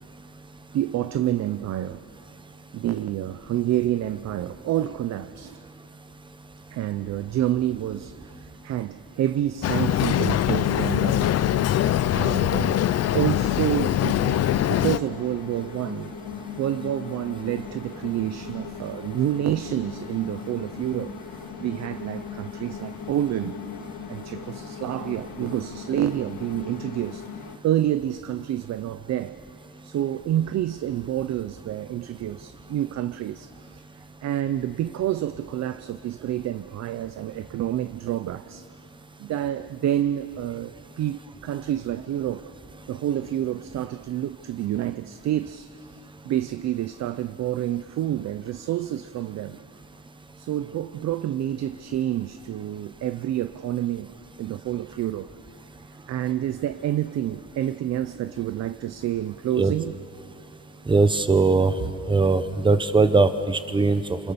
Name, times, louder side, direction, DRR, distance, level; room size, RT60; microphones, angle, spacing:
voice 1, 0.7-2.0 2.7-5.6 6.7-11.3 12.1-16.1 16.6-23.6 24.1-27.3 27.6-29.3 29.8-33.8 34.2-38.7 39.2-42.5 42.9-45.9 46.2-49.6 50.4-54.1 54.4-55.3 56.1-59.9, right 12 dB, 55° right, 0.6 m, -28 dB
Boat Water vehicle, 9.6-15.0, left 12 dB, 55° left, 0.6 m, -22 dB
sound 1, 12.9-27.6, left 6 dB, 85° left, 1.7 m, -39 dB
voice 2, 60.9-61.7 62.1-64.3, right 3 dB, 15° right, 0.9 m, -20 dB
29.5 x 27.5 x 6.9 m
cardioid pair, 175°, 31 cm